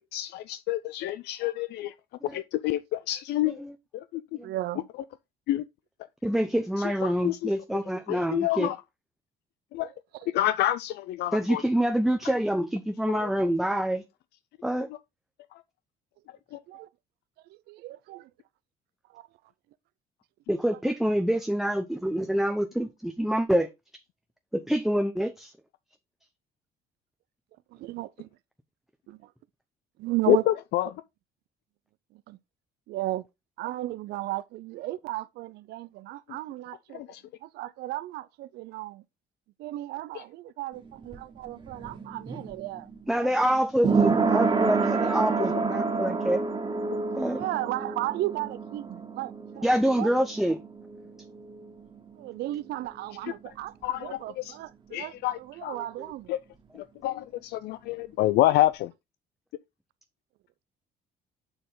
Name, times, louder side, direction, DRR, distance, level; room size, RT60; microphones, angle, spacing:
voice 1, 0.1-1.9 2.3-3.6 3.9-4.2 4.7-5.0 5.5-5.6 6.8-7.5 8.1-8.8 9.7-9.9 10.3-11.6 12.2-12.3 13.1-13.3 14.9-15.0 15.5-15.6 16.5-16.6 30.3-30.9 36.9-37.2 40.1-40.2 45.4-45.5 53.1-53.3 53.8-54.6 54.9-55.9 56.3-56.4 56.7-58.9, left 14 dB, 75° left, 0.5 m, -28 dB
voice 2, 4.4-4.8 10.2-10.3 16.7-16.9 17.7-18.3 19.1-19.2 27.7-28.3 29.1-29.2 30.0-30.4 32.3-32.4 32.9-33.2 33.6-37.0 37.4-39.0 39.6-42.9 43.2-43.5 47.3-49.7 50.0-50.1 52.1-53.7 54.0-55.1 55.6-56.3, right 16 dB, 75° right, 0.5 m, -34 dB
voice 3, 6.2-8.7 11.3-14.0 14.6-14.9 20.5-23.7 24.5-25.5 43.1-46.4 47.2-47.4 49.6-50.6, equal, ahead, 0.7 m, -26 dB
sound 1, 40.7-52.3 52.5-52.6, right 4 dB, 30° right, 1.8 m, -29 dB
6.8 x 6.3 x 3.8 m
cardioid pair, 110°, 17 cm